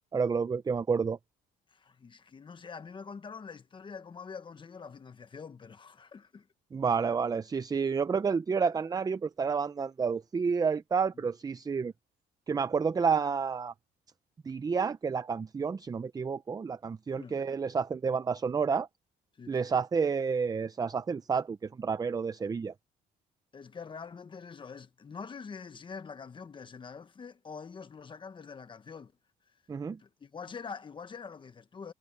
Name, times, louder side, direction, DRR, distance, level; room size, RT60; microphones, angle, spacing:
voice 1, 0.1-1.2 6.7-11.9 12.5-13.7 14.5-18.9 19.5-22.7 29.7-30.0, right 5 dB, 20° right, 0.6 m, -30 dB
voice 2, 1.7-6.5 11.1-11.3 17.2-17.4 19.4-19.6 23.5-29.1 30.0-31.9, left 5 dB, 30° left, 1.4 m, -45 dB
cardioid pair, 110°, 17 cm